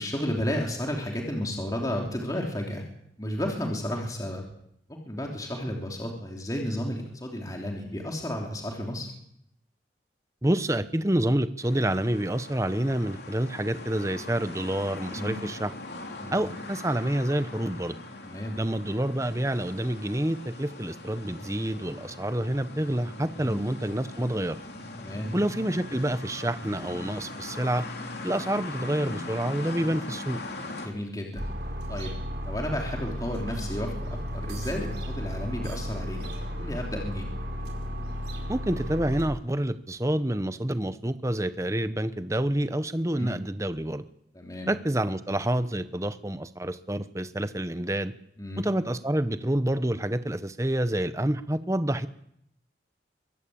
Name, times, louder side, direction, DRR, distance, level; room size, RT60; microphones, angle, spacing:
voice 1, 0.0-2.8 3.2-4.4 4.9-9.1 15.1-15.4 16.2-16.5 18.2-18.6 23.4-23.6 25.0-25.3 30.8-31.5 31.9-32.2 32.4-36.3 36.6-37.3 43.2-43.3 44.3-44.7 48.4-48.7, left 1 dB, 20° left, 0 dB, 3.2 m, -32 dB
voice 2, 10.4-15.7 16.3-18.0 18.6-24.6 25.3-27.8 28.2-30.4 38.5-44.0 44.7-48.1 48.6-52.1, right 1 dB, 15° right, 12 dB, 0.9 m, -28 dB
sound 1, 11.6-30.9, left 2 dB, 60° left, 3.4 m, -40 dB
sound 2, 31.4-39.3, equal, 65° right, 4.8 m, -34 dB
23.5 x 14.5 x 8.7 m, 0.74 s
head